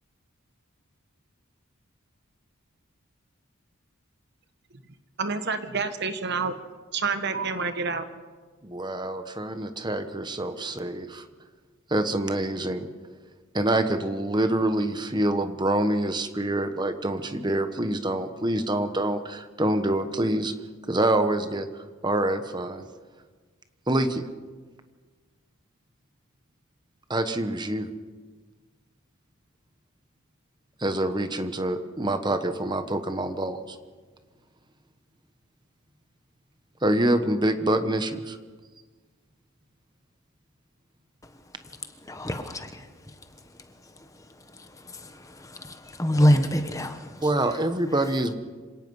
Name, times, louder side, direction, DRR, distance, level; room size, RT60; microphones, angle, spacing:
voice 1, 5.2-6.6 6.9-8.1, right 4 dB, 50° right, 9 dB, 1.2 m, -28 dB
voice 2, 8.6-11.2 11.9-12.9 13.5-20.5 20.9-22.8 23.9-24.3 27.1-27.9 30.8-33.8 36.8-38.4 47.2-48.3, right 1 dB, 20° right, 9 dB, 1.1 m, -26 dB
voice 3, 42.1-42.9 44.9-47.3, equal, 15° left, 7 dB, 1.2 m, -25 dB
26.5 x 17.5 x 5.5 m, 1.4 s
head